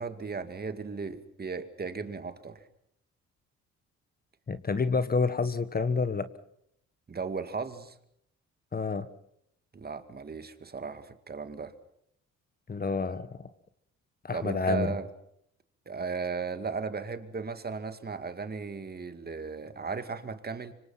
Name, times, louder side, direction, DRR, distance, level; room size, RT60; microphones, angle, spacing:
voice 1, 0.0-2.6 7.1-8.0 9.7-11.7 14.3-15.1 15.9-20.7, right 5 dB, 30° right, 2.2 m, -36 dB
voice 2, 4.5-6.3 8.7-9.1 12.7-13.5 14.2-15.0, left 4 dB, 30° left, 1.5 m, -28 dB
25.5 x 25.5 x 5.8 m
cardioid pair, 90°, 30 cm